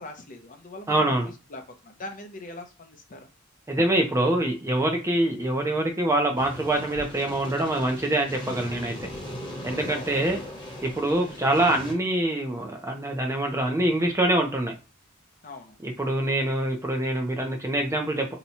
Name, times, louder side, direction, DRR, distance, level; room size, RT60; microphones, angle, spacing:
voice 1, 0.0-3.3 9.9-10.3 15.4-15.8, left 2 dB, 40° left, 5 dB, 0.6 m, -42 dB
voice 2, 0.9-1.3 3.7-8.9 9.6-10.4 10.8-14.7 15.8-18.3, right 1 dB, 15° right, 3 dB, 0.6 m, -25 dB
sound 1, 6.3-11.9, equal, 25° left, 1.0 m, -39 dB
2.8 x 2.2 x 4.0 m, 0.31 s
head